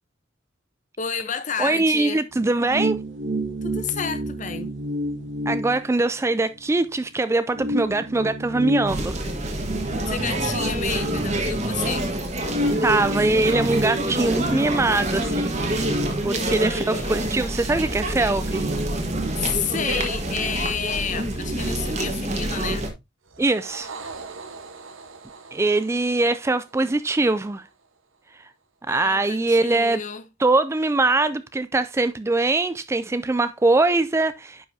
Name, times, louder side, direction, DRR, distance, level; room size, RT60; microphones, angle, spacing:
voice 1, 1.0-2.2 3.6-4.7 10.1-12.1 16.4-17.2 19.4-22.9 28.9-30.3, left 7 dB, 40° left, 0.8 m, -30 dB
voice 2, 1.6-3.0 5.5-9.2 12.8-16.0 16.2-18.7 23.4-23.9 25.5-27.7 28.9-30.0 30.4-34.7, right 2 dB, 15° right, 0.3 m, -22 dB
sound 1, 2.3-6.6 7.0-7.1 7.5-11.9 12.4-17.1 17.5-17.6 18.0-20.4 20.7-21.9, right 1 dB, 70° right, 1.6 m, -31 dB
sound 2, 8.9-22.9, right 1 dB, 35° right, 1.4 m, -27 dB
sound 3, 23.3-27.9, right 4 dB, 85° right, 1.1 m, -42 dB
9.5 x 5.6 x 2.7 m
head